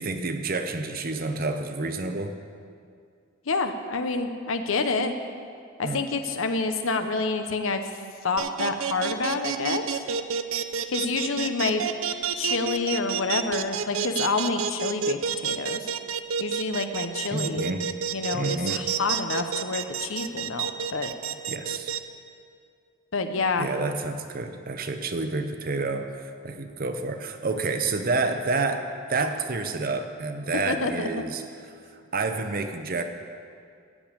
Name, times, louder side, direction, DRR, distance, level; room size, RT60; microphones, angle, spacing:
voice 1, 0.0-2.4 5.8-6.0 17.3-17.8 18.3-18.8 21.5-21.9 23.6-31.4 32.1-33.0, right 3 dB, 45° right, 7 dB, 0.8 m, -29 dB
voice 2, 3.5-5.1 5.8-7.8 8.2-10.0 10.9-11.9 12.4-15.9 16.4-17.7 18.1-21.1 23.1-23.7 30.7-31.2, left 3 dB, 65° left, 7 dB, 0.8 m, -28 dB
sound 1, 8.4-22.0, right 7 dB, 70° right, 0.5 m, -29 dB
15.0 x 5.2 x 8.7 m, 2.3 s
head